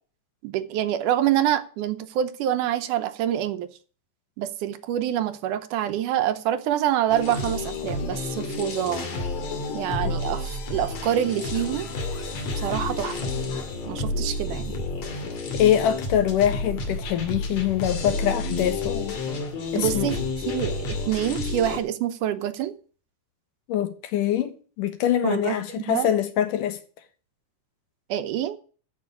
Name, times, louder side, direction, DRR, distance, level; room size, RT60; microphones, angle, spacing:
voice 1, 0.4-3.7 4.4-9.1 9.7-11.9 12.6-13.3 13.9-14.7 19.8-20.2 20.5-22.7 25.2-26.1 28.1-28.6, right 11 dB, 75° right, 2.3 m, -26 dB
sound 1, 7.1-21.8, left 3 dB, 60° left, 3.4 m, -30 dB
voice 2, 15.5-19.2 19.7-20.1 23.7-26.8, left 10 dB, 75° left, 2.8 m, -24 dB
13.5 x 5.6 x 8.3 m
omnidirectional pair, 3.8 m